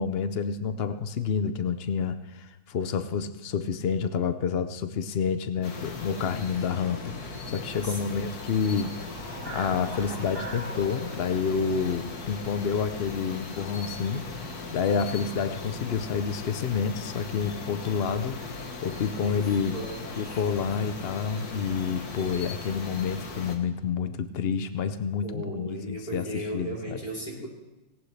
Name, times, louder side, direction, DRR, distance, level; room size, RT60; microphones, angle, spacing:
voice 1, 0.0-9.0 9.5-14.2 14.7-18.4 18.8-19.8 20.2-26.3 26.5-27.0, left 6 dB, 85° left, 10 dB, 0.5 m, -29 dB
sound 1, 5.6-23.6, left 3 dB, 55° left, 1.9 m, -39 dB
voice 2, 7.8-8.3 19.2-20.9 25.2-27.5, right 1 dB, 20° left, -3 dB, 3.3 m, -37 dB
sound 2, 8.7-13.0, right 2 dB, 60° right, 3.4 m, -42 dB
18.0 x 18.0 x 3.3 m, 1.0 s
omnidirectional pair, 2.0 m